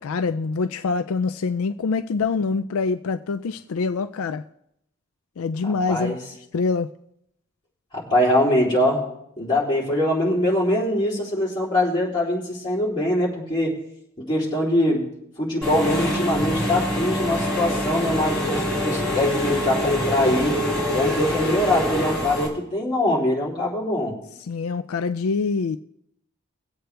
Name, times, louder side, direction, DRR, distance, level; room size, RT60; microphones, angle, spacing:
voice 1, 0.0-4.4 5.4-6.2 6.5-6.9 24.5-25.8, left 4 dB, 80° left, 0.4 m, -25 dB
voice 2, 5.6-6.2 7.9-9.0 9.4-13.7 14.2-15.0 15.4-20.6 20.9-24.1, left 1 dB, 20° left, 3.5 m, -23 dB
Engine / Mechanisms, 15.6-22.5, equal, 5° left, 2.9 m, -25 dB
22.0 x 8.0 x 3.4 m
head